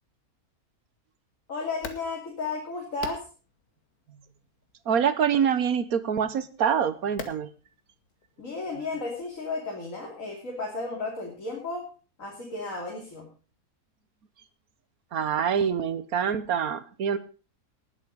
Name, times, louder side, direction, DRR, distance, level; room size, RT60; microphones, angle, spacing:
voice 1, 1.5-3.3 8.4-11.8 12.2-13.3, left 3 dB, 60° left, -1 dB, 3.3 m, -33 dB
sound 1, 1.7-9.5, left 4 dB, 85° left, 2.3 m, -46 dB
voice 2, 4.9-7.5 15.1-17.2, right 7 dB, 75° right, 14 dB, 1.6 m, -25 dB
19.0 x 8.3 x 5.2 m, 0.36 s
omnidirectional pair, 1.5 m